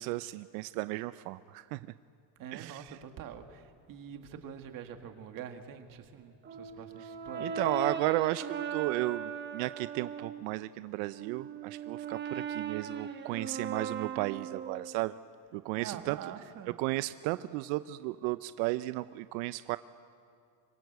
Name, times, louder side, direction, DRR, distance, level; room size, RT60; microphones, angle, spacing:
voice 1, 0.0-1.8 2.5-3.0 7.4-15.1 15.5-16.2 16.8-19.8, right 19 dB, 85° right, 14 dB, 0.7 m, -34 dB
voice 2, 2.4-7.6 15.8-16.8, right 8 dB, 45° right, 6 dB, 2.0 m, -45 dB
Brass instrument, 6.4-10.4 11.0-15.0, right 6 dB, 25° right, 1.2 m, -38 dB
26.0 x 21.5 x 8.1 m, 2.3 s
cardioid pair, 155°, 47 cm